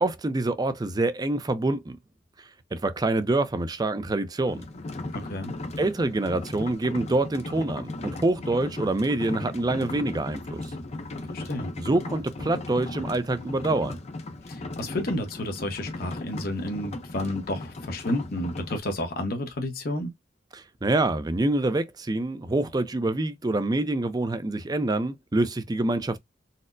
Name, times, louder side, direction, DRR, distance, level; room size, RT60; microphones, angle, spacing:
voice 1, 0.0-2.0 2.7-4.7 5.8-10.6 11.8-14.0 20.5-26.2, right 2 dB, 20° right, 0.4 m, -26 dB
sound 1, 4.5-18.8, left 2 dB, 35° left, 0.5 m, -37 dB
voice 2, 5.1-5.5 11.3-11.7 14.5-20.1, left 1 dB, 55° left, 0.9 m, -31 dB
4.1 x 2.0 x 2.5 m
head